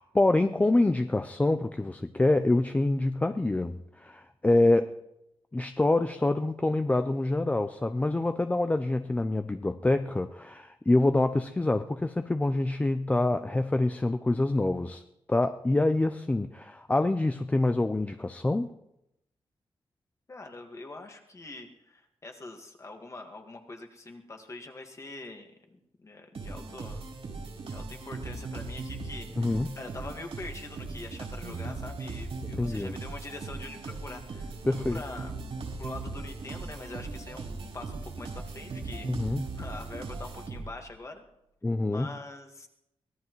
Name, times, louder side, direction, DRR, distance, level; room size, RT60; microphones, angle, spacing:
voice 1, 0.0-4.9 5.5-15.0 15.3-18.7 29.4-29.7 32.6-32.9 34.6-35.0 39.0-39.4 41.6-42.1, left 2 dB, 15° left, 9 dB, 0.4 m, -26 dB
voice 2, 20.3-27.1 27.6-34.5 34.9-35.3 35.8-41.2 41.9-42.7, left 2 dB, 30° left, 4 dB, 1.7 m, -44 dB
sound 1, 26.3-40.9, right 3 dB, 80° right, 4.1 m, -39 dB
sound 2, 34.1-40.5, right 2 dB, 55° right, 2.0 m, -49 dB
23.5 x 17.0 x 3.1 m, 0.85 s
wide cardioid pair, 145°, 10 cm